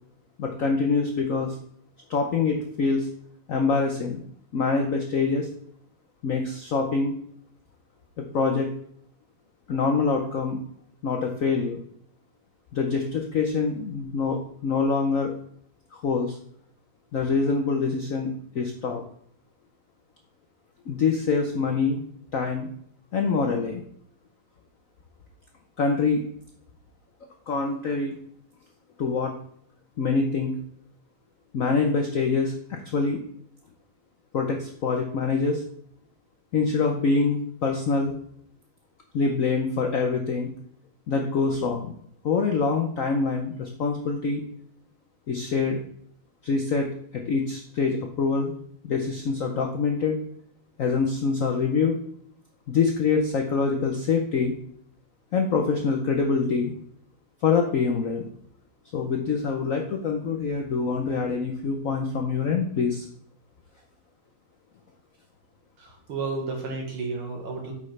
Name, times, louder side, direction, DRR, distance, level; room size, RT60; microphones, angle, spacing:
voice 1, 0.4-1.6 2.1-3.1 3.5-4.2 4.5-5.5 6.2-7.1 8.2-8.7 9.7-10.6 11.0-11.8 12.7-15.3 15.9-16.4 17.1-19.0 20.9-22.0 22.3-22.7 23.1-23.8 25.8-26.2 27.5-28.2 29.0-29.3 30.0-30.5 31.5-33.2 34.3-35.6 36.5-38.1 39.1-40.5 41.1-41.9 42.2-44.4 45.3-45.8 46.4-46.9 47.1-48.5 48.8-50.2 50.8-52.0 52.7-54.5 55.3-56.7 57.4-58.2 58.9-63.0, left 4 dB, 70° left, 3 dB, 0.8 m, -25 dB
voice 2, 65.8-67.7, right 4 dB, 80° right, 0 dB, 2.3 m, -32 dB
8.6 x 5.5 x 3.2 m, 0.65 s
omnidirectional pair, 2.3 m